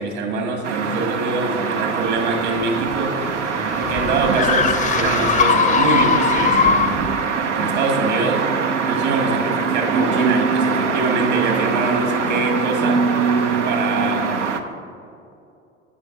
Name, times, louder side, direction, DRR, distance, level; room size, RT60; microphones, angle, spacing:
voice 1, 0.0-3.2 3.8-7.2 7.5-8.5 8.8-13.1 13.6-14.5, right 3 dB, 50° right, 3 dB, 1.8 m, -24 dB
sound 1, 0.6-14.6, right 5 dB, 80° right, 0.6 m, -22 dB
sound 2, 2.6-7.1, left 6 dB, 20° left, 0.5 m, -20 dB
16.5 x 7.0 x 2.7 m, 2.6 s
figure-of-eight pair, 65°, 36 cm